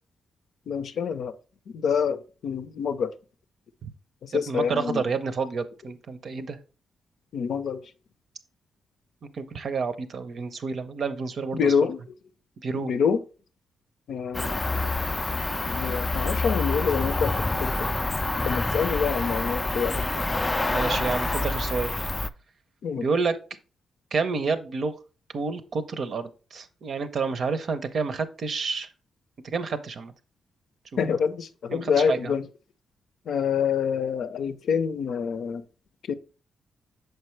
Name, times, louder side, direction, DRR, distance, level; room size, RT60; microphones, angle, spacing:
voice 1, 0.7-1.3 1.7-3.1 4.3-5.0 7.3-7.8 11.5-12.0 12.7-13.2 14.1-14.6 15.6-17.3 17.6-17.7 18.4-20.1 22.8-23.1 31.0-32.4 33.3-35.6 36.1-36.2, left 6 dB, 75° left, 0.5 m, -26 dB
voice 2, 4.3-6.6 9.3-11.7 12.6-12.9 20.7-22.1 23.0-23.4 24.1-25.0 25.3-28.9 29.4-30.1 30.9-31.0 31.7-32.4, right 4 dB, 60° right, 0.7 m, -29 dB
Cricket, 14.3-22.3, left 2 dB, 20° left, 0.3 m, -27 dB
6.6 x 4.6 x 3.2 m
cardioid pair, 70°, 0 cm